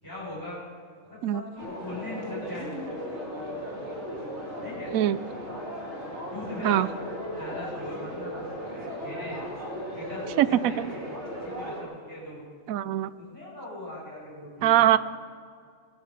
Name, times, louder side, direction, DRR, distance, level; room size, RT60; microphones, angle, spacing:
voice 1, 0.0-0.6 1.0-2.7 4.6-4.9 6.3-6.8 7.4-8.4 9.0-9.4 9.9-11.1 11.4-12.4 13.2-15.0, left 2 dB, 15° right, -9 dB, 5.6 m, -40 dB
sound 1, 1.6-11.8, equal, 50° right, 2.6 m, -36 dB
voice 2, 10.4-10.7 12.7-13.1 14.6-15.0, right 12 dB, 75° right, 16 dB, 1.0 m, -21 dB
20.0 x 10.5 x 6.0 m, 2.2 s
omnidirectional pair, 1.5 m